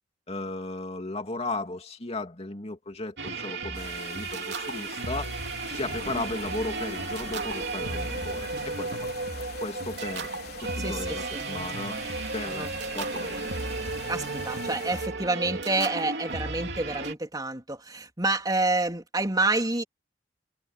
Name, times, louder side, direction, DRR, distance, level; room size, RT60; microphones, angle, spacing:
voice 1, 0.3-5.3 5.7-10.3 10.6-12.0 12.3-12.7 12.9-13.4, left 2 dB, 35° left, 2.8 m, -35 dB
sound 1, 3.2-17.1, right 3 dB, 65° right, 3.7 m, -34 dB
sound 2, 3.7-15.1, left 5 dB, 60° left, 3.9 m, -44 dB
voice 2, 10.8-11.4 12.5-12.7 14.1-19.8, right 2 dB, 20° right, 3.5 m, -28 dB
head